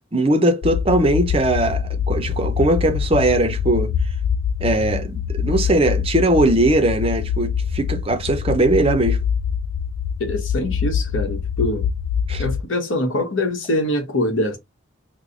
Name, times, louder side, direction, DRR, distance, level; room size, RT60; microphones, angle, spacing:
voice 1, 0.1-3.9 4.6-9.2 12.3-12.4, right 1 dB, 25° right, 0.6 m, -19 dB
sound 1, 0.6-12.6, left 7 dB, 80° left, 0.3 m, -24 dB
voice 2, 10.2-11.9 12.4-14.6, left 1 dB, 65° left, 1.1 m, -23 dB
3.1 x 2.1 x 3.8 m
head